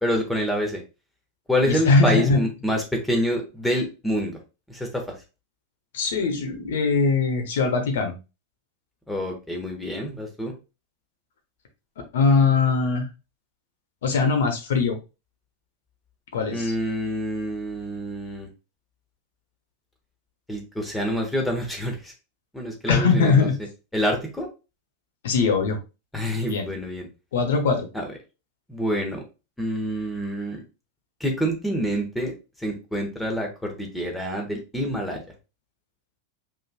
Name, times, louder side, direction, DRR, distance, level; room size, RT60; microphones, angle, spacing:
voice 1, 0.0-0.8 1.5-4.4 4.7-5.0 9.1-10.5 16.5-18.5 20.5-22.1 22.5-23.5 23.9-24.5 26.1-27.1 27.9-28.1 28.7-29.2 29.6-30.6 31.2-32.3 32.6-35.2, equal, 5° left, 2 dB, 1.2 m, -27 dB
voice 2, 1.7-2.4 5.9-8.1 12.1-13.0 14.0-15.0 16.3-16.7 22.9-23.6 25.2-25.8 26.4-26.7 27.3-27.9, left 4 dB, 60° left, 5 dB, 1.1 m, -21 dB
5.3 x 3.7 x 2.2 m, 0.28 s
figure-of-eight pair, 90°, 0 cm